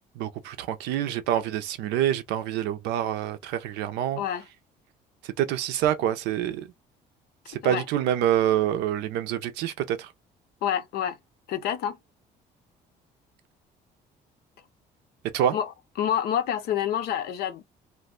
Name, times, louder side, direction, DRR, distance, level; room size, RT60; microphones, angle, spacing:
voice 1, 0.2-4.2 5.2-6.7 7.5-10.1 15.3-15.5, right 11 dB, 90° right, 0.5 m, -26 dB
voice 2, 10.6-11.2 11.5-12.0 15.5-15.7 16.0-17.6, left 9 dB, 70° left, 0.6 m, -27 dB
2.5 x 2.1 x 3.6 m
cardioid pair, 110°, 17 cm